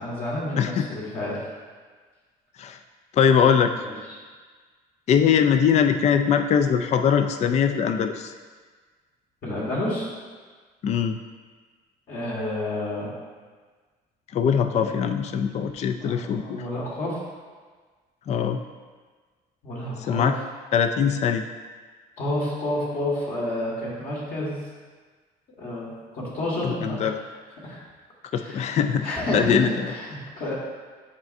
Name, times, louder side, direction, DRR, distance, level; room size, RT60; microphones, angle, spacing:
voice 1, 0.0-1.4 3.7-4.2 9.4-10.1 12.1-13.1 14.8-15.1 16.0-17.2 19.6-20.3 22.2-24.6 25.6-27.1 27.6-27.8 28.3-28.7 29.0-29.6 29.9-30.5, left 1 dB, 60° left, -5 dB, 1.8 m, -30 dB
voice 2, 0.6-0.9 2.6-2.8 3.1-3.7 5.1-8.3 10.8-11.2 14.3-16.6 18.3-18.6 20.0-20.3 20.7-21.5 26.6-27.2 28.3-29.9, left 7 dB, 40° left, 8 dB, 0.4 m, -22 dB
9.5 x 4.1 x 2.6 m, 1.5 s
cardioid pair, 110°, 17 cm